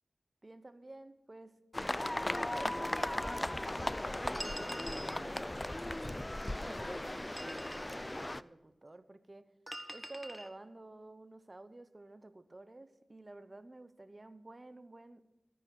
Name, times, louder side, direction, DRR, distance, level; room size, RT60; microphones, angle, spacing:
voice 1, 0.4-1.6 2.2-4.0 4.4-9.5 9.9-15.3, right 2 dB, 35° right, 12 dB, 0.9 m, -52 dB
sound 1, 1.7-8.4, left 1 dB, 20° left, 0.4 m, -37 dB
sound 2, 4.3-5.2 7.2-8.0 9.7-10.5, right 1 dB, 15° right, 1.3 m, -45 dB
14.0 x 9.8 x 6.1 m, 1.0 s
cardioid pair, 50°, 0 cm